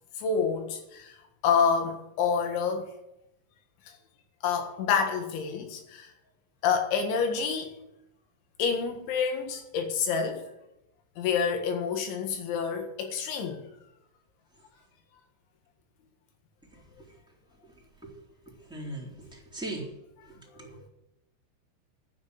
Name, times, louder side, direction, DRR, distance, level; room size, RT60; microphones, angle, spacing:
voice 1, 0.2-1.2 1.4-2.9 3.9-4.0 4.4-6.1 6.6-7.7 8.6-10.4 11.2-13.6 20.8-20.9, left 6 dB, 75° left, 5 dB, 3.9 m, -28 dB
voice 2, 18.7-19.8 20.6-20.9, right 2 dB, ahead, -4 dB, 2.6 m, -38 dB
11.0 x 9.8 x 8.2 m, 0.88 s
omnidirectional pair, 5.5 m